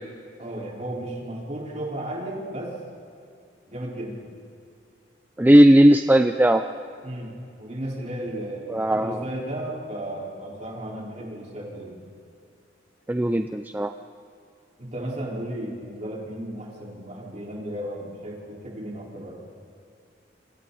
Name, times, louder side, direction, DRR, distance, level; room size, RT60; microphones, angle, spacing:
voice 1, 0.4-2.7 3.7-4.3 7.0-7.3 7.6-12.0 14.8-19.4, right 1 dB, 40° right, -3 dB, 4.9 m, -34 dB
voice 2, 5.4-6.6 8.7-9.2 13.1-13.9, right 1 dB, 10° right, 7 dB, 0.5 m, -17 dB
27.5 x 26.0 x 4.3 m, 2.4 s
head